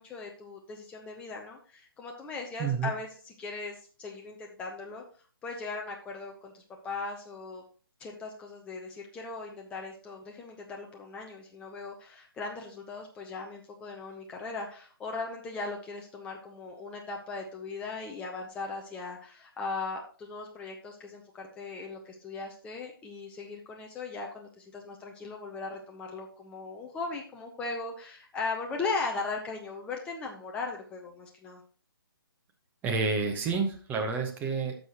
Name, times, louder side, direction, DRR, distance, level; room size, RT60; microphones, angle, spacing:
voice 1, 0.0-3.1 3.4-5.0 5.4-7.6 8.0-31.6, left 3 dB, 10° left, 1 dB, 0.6 m, -38 dB
voice 2, 2.6-2.9 32.8-34.8, right 4 dB, 15° right, 3 dB, 1.0 m, -29 dB
11.0 x 6.4 x 2.9 m, 0.40 s
figure-of-eight pair, 140°, 13 cm